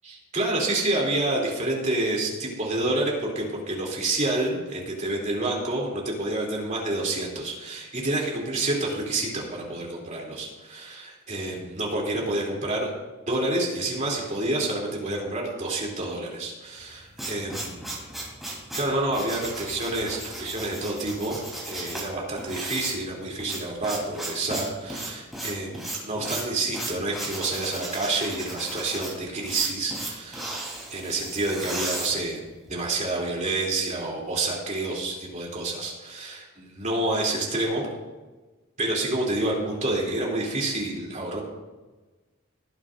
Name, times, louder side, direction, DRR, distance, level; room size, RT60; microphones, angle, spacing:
voice 1, 0.0-12.9 13.3-17.9 18.7-21.4 21.6-30.6 30.9-32.4 32.7-37.9 38.8-41.4, right 2 dB, 40° right, -2 dB, 3.2 m, -28 dB
sound 1, 16.8-32.7, right 2 dB, ahead, 3.8 m, -35 dB
18.5 x 10.0 x 2.6 m, 1.2 s
head